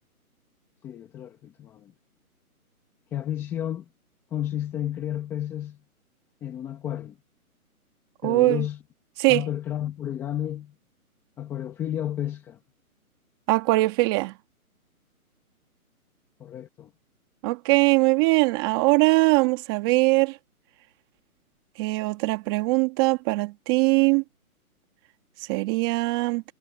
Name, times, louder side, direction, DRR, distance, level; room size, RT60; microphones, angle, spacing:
voice 1, 0.8-1.9 3.1-3.8 4.3-5.8 6.4-7.1 8.2-8.8 9.3-10.7 11.4-12.6 16.4-16.9, left 11 dB, 5° left, 1.0 m, -31 dB
voice 2, 8.2-8.6 9.2-9.4 13.5-14.3 17.4-20.4 21.8-24.2 25.5-26.4, right 24 dB, 15° right, 1.5 m, -21 dB
hypercardioid pair, 160°, 44 cm